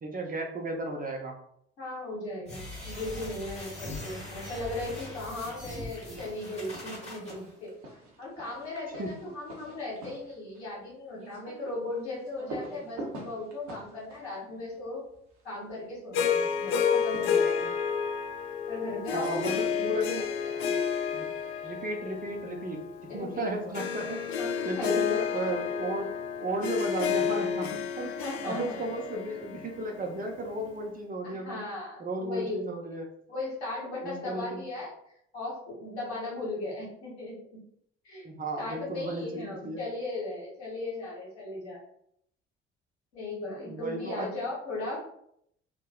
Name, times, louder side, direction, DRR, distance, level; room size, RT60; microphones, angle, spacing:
voice 1, 0.0-1.4 9.0-9.1 19.1-20.3 21.1-21.3 21.6-24.3 24.7-31.7 32.0-33.1 34.0-34.6 38.2-39.8 43.7-44.4, right 1 dB, 25° right, 2 dB, 0.7 m, -34 dB
voice 2, 1.8-7.7 8.2-15.0 15.4-17.7 18.7-19.5 20.0-20.2 20.4-20.8 23.1-23.7 24.4-25.1 28.0-28.9 31.2-32.6 33.3-37.6 38.0-38.3 38.6-41.8 43.1-45.0, left 2 dB, 85° left, -5 dB, 1.1 m, -37 dB
sound 1, 2.5-7.3, left 2 dB, 20° left, 1.4 m, -41 dB
sound 2, 4.0-4.2 4.5-15.5 16.7-18.0, right 2 dB, 60° right, 0.9 m, -47 dB
Harp, 16.1-30.5, left 7 dB, 60° left, 0.5 m, -30 dB
3.5 x 2.1 x 2.3 m, 0.71 s
figure-of-eight pair, 50°, 33 cm